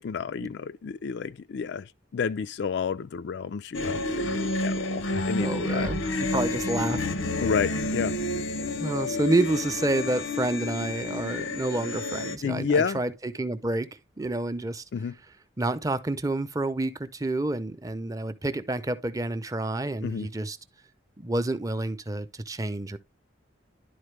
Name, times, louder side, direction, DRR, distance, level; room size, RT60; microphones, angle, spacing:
voice 1, 0.0-5.9 7.4-8.1 12.4-13.0 14.9-15.1 20.0-20.3, left 6 dB, 65° left, 0.4 m, -30 dB
sound 1, 3.7-12.4, left 2 dB, 85° left, 0.8 m, -30 dB
voice 2, 5.4-7.1 8.8-13.9 14.2-14.8 15.6-20.6 21.2-23.0, right 2 dB, 20° right, 0.6 m, -29 dB
11.0 x 4.4 x 3.3 m
head